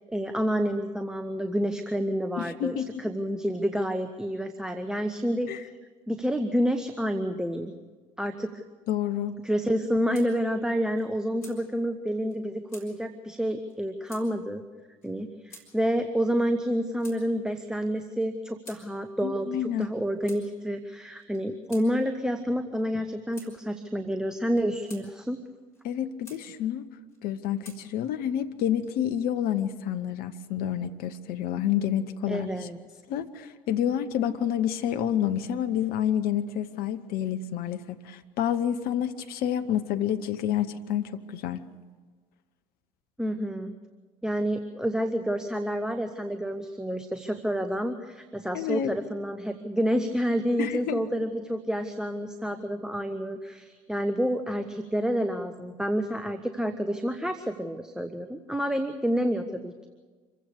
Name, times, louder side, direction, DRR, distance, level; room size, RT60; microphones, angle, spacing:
voice 1, 0.1-5.5 6.1-7.7 8.2-8.5 9.4-14.6 15.0-25.4 32.3-32.8 43.2-43.7 44.2-59.9, equal, 5° right, 8 dB, 1.3 m, -29 dB
voice 2, 2.4-3.0 5.5-5.6 8.9-9.3 19.2-19.9 25.8-26.9 27.2-32.5 33.1-41.6 48.5-48.9 50.6-51.0, left 10 dB, 60° left, 9 dB, 1.2 m, -29 dB
sound 1, 9.7-10.3 10.6-10.7 11.0-11.6 12.3-12.4 12.7-12.9 13.7-13.8 14.1-14.3 15.0-15.1 15.5-15.7 16.4-17.2 18.0-18.8 19.6-19.9 20.3-20.4 21.2-21.9 22.7-22.9 23.3-23.5 24.4-25.0 25.7-26.4 27.1-27.8 28.6-29.1, left 1 dB, 85° left, 4.1 m, -50 dB
26.0 x 16.0 x 6.7 m, 1.4 s
figure-of-eight pair, 55°, 18 cm